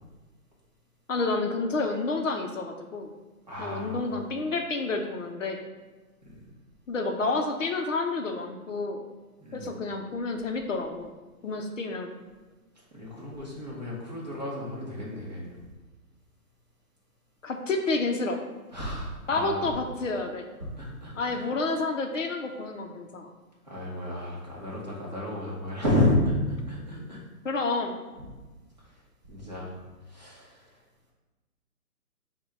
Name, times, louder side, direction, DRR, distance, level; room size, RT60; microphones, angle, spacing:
voice 1, 1.1-3.1 3.6-5.7 6.9-9.0 9.5-11.1 11.4-12.1 17.4-18.4 19.3-20.4 21.2-23.3 27.4-28.0, left 3 dB, 60° left, 4 dB, 0.5 m, -29 dB
voice 2, 3.5-4.1 6.2-6.3 9.4-9.7 12.9-15.6 18.7-19.7 20.6-21.5 23.7-27.2 28.2-28.3 28.8-28.9 29.2-30.7, left 1 dB, 30° right, -6 dB, 0.7 m, -31 dB
5.0 x 2.2 x 4.7 m, 1.2 s
hypercardioid pair, 180°, 45 cm